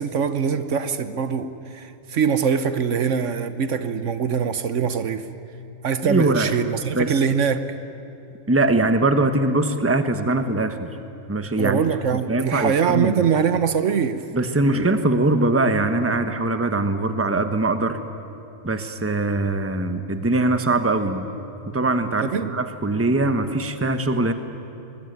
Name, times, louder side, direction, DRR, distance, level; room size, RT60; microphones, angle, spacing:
voice 1, 0.0-5.3 5.8-7.7 11.6-14.2 22.2-22.5, right 6 dB, 70° right, 11 dB, 1.2 m, -23 dB
voice 2, 6.1-6.5 6.9-7.2 8.5-10.9 11.3-11.8 12.1-13.2 14.3-18.0 18.6-21.3 21.7-24.3, right 2 dB, 10° right, 8 dB, 1.1 m, -22 dB
24.5 x 21.0 x 9.3 m, 2.8 s
omnidirectional pair, 1.3 m